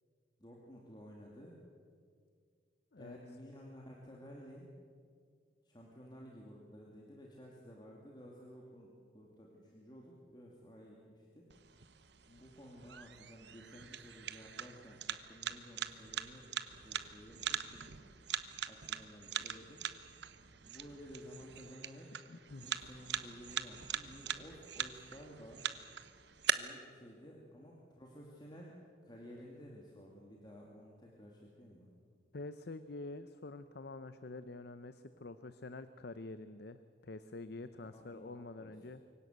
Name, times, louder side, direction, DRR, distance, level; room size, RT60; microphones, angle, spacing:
voice 1, 0.4-1.6 2.9-4.7 5.6-11.5 12.3-18.1 18.7-19.8 20.5-22.1 22.6-25.6 26.4-28.7 29.0-31.9 37.9-38.8, equal, 20° left, -2 dB, 2.6 m, -54 dB
sound 1, 11.5-26.5, right 9 dB, 60° right, 0.9 m, -42 dB
voice 2, 22.3-22.6 32.3-39.0, left 2 dB, 55° left, 12 dB, 0.7 m, -47 dB
24.5 x 17.0 x 8.0 m, 2.1 s
head